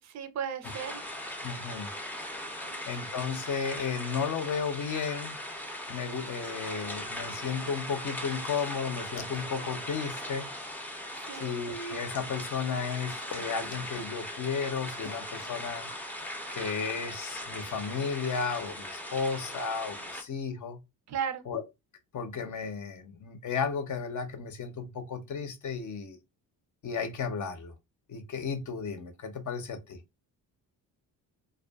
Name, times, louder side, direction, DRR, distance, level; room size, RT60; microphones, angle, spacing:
voice 1, 0.1-1.0 2.6-2.8 11.2-11.6 21.1-21.4, right 7 dB, 45° right, 0.5 m, -35 dB
sound 1, 0.6-20.2, left 1 dB, 5° left, 0.5 m, -39 dB
voice 2, 1.4-1.9 2.9-5.4 5.9-10.5 11.3-15.9 16.5-20.8 21.5-21.6 22.1-26.2 26.8-27.7 28.1-30.0, left 5 dB, 45° left, 0.6 m, -34 dB
2.5 x 2.3 x 2.3 m
cardioid pair, 90°, 40 cm